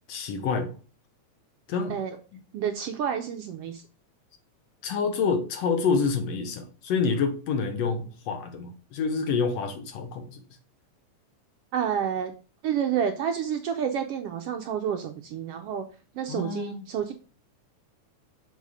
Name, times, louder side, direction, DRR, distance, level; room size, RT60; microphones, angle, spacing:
voice 1, 0.1-0.8 1.7-2.0 4.8-10.4 16.3-16.8, left 5 dB, 65° left, 2.0 m, -27 dB
voice 2, 2.5-3.8 11.7-12.3 12.6-15.9 16.1-17.1, right 8 dB, 75° right, 1.4 m, -29 dB
6.9 x 4.1 x 4.8 m
omnidirectional pair, 3.3 m